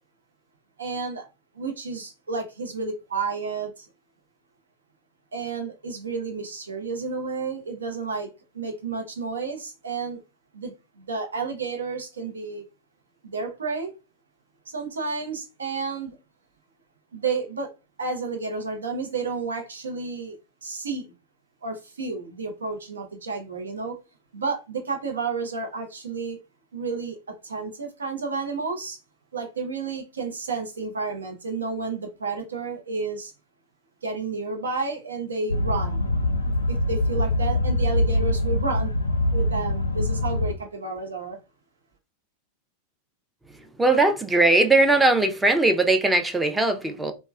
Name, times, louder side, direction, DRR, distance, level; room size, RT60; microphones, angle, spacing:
voice 1, 0.8-1.3 1.5-3.9 5.3-10.2 10.5-12.6 13.2-13.9 14.7-16.2 17.1-17.7 18.0-20.4 20.6-21.1 21.6-24.0 24.3-26.4 26.7-27.2 27.4-29.0 29.3-33.3 34.0-36.0 36.7-39.0 39.3-41.4, right 4 dB, 80° right, 0.6 m, -31 dB
sound 1, 35.5-40.5, left 1 dB, 90° left, 0.4 m, -24 dB
voice 2, 43.8-47.1, right 2 dB, 10° right, 0.5 m, -19 dB
3.1 x 2.1 x 2.2 m
figure-of-eight pair, 90°, 0 cm